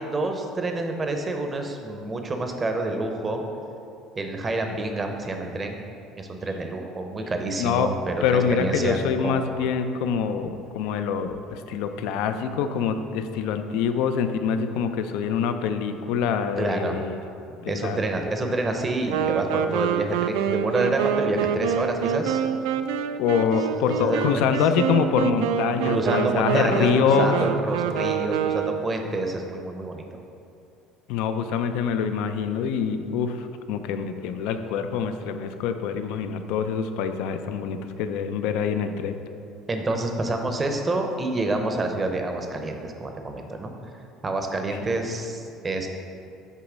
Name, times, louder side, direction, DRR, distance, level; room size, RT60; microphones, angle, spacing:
voice 1, 0.0-3.4 4.2-5.8 6.2-9.5 12.0-12.1 16.6-17.0 17.7-22.4 24.0-24.5 25.8-30.0 39.7-43.7 44.2-45.9, right 2 dB, 20° right, 4 dB, 0.7 m, -28 dB
voice 2, 7.6-7.9 8.2-17.2 17.6-18.0 18.4-18.5 23.2-27.4 31.1-39.2, left 7 dB, 75° left, 8 dB, 0.4 m, -25 dB
Wind instrument woodwind instrument, 19.1-29.0, right 8 dB, 90° right, 0.3 m, -26 dB
8.3 x 3.1 x 6.1 m, 2.6 s
cardioid pair, 130°, 0 cm